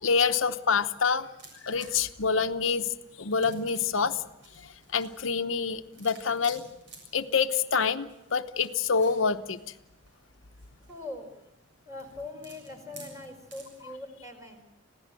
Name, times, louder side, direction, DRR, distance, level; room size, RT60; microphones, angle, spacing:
voice 1, 0.0-1.3 1.6-2.9 3.2-4.2 4.9-6.6 7.1-9.6, left 5 dB, 85° left, 9 dB, 1.0 m, -26 dB
sound 1, 1.4-14.0, right 2 dB, 60° right, 7.2 m, -53 dB
voice 2, 10.9-11.3 11.8-14.6, left 2 dB, 15° right, 4 dB, 4.7 m, -42 dB
27.0 x 17.0 x 7.6 m, 0.87 s
head